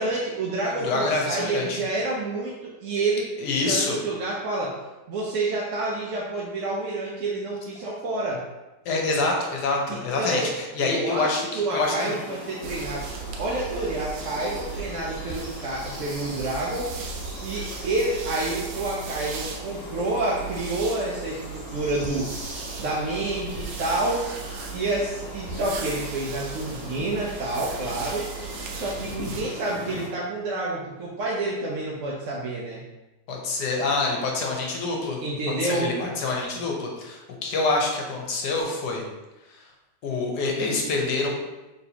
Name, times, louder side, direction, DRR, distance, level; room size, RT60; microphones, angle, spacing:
voice 1, 0.0-3.3 3.7-4.8 5.1-8.4 9.9-10.5 10.8-13.1 13.4-16.9 17.4-22.3 22.8-24.3 24.7-28.3 28.7-32.8 35.2-35.9, right 2 dB, 65° right, -4 dB, 0.8 m, -28 dB
voice 2, 0.8-1.8 3.4-4.0 8.8-12.1 33.3-35.2 35.6-39.0 39.5-39.6 40.0-41.3, left 3 dB, 75° left, 0 dB, 1.3 m, -26 dB
sound 1, 11.8-30.1, left 2 dB, 60° left, 1.8 m, -40 dB
sound 2, 12.6-29.4, right 6 dB, 85° right, 1.3 m, -37 dB
4.2 x 3.3 x 2.8 m, 1.0 s
omnidirectional pair, 1.8 m